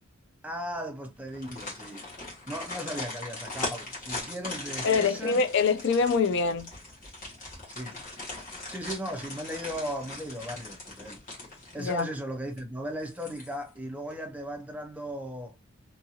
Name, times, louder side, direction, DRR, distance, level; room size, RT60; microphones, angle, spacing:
voice 1, 0.4-2.1 2.5-5.4 7.7-8.1 8.7-11.2 11.7-15.6, equal, 5° right, 0.5 m, -37 dB
sound 1, 1.3-12.2 12.6-12.7 13.1-13.8 14.1-14.2, left 2 dB, 40° left, 1.5 m, -40 dB
voice 2, 4.8-6.7 11.8-12.1, left 5 dB, 55° left, 0.4 m, -24 dB
2.8 x 2.6 x 2.7 m
head